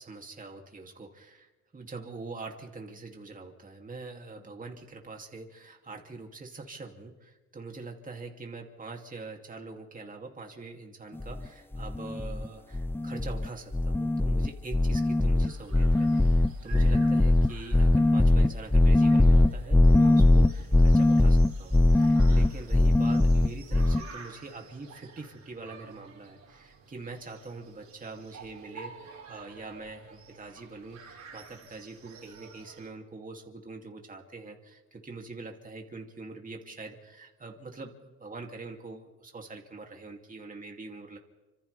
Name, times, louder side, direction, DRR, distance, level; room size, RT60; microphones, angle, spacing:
voice 1, 0.0-41.2, right 3 dB, 25° right, 2 dB, 2.9 m, -44 dB
sound 1, 11.2-11.5 11.7-12.5 12.7-13.5 13.7-24.0, left 2 dB, 5° left, 0.6 m, -21 dB
sound 2, 15.4-32.9, right 5 dB, 65° right, 4.8 m, -51 dB
29.0 x 26.5 x 3.5 m, 1.2 s
cardioid pair, 90°, 30 cm